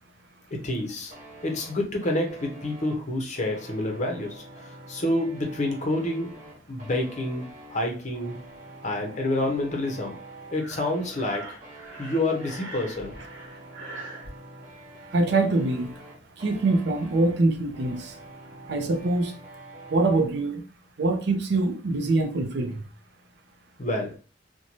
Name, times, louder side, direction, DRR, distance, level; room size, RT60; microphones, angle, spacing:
voice 1, 0.5-1.1 1.4-8.4 8.8-10.2 10.5-11.6 12.0-13.2 23.8-24.2, left 1 dB, 40° left, 0.6 m, -28 dB
sound 1, 1.1-20.3, right 2 dB, 45° right, 1.1 m, -46 dB
Breathing, 10.6-14.3, right 2 dB, 85° right, 0.9 m, -42 dB
voice 2, 15.1-15.9 16.4-18.1 18.7-19.3 19.9-20.6 21.0-22.8, right 2 dB, 65° right, 0.5 m, -24 dB
2.6 x 2.1 x 2.9 m
head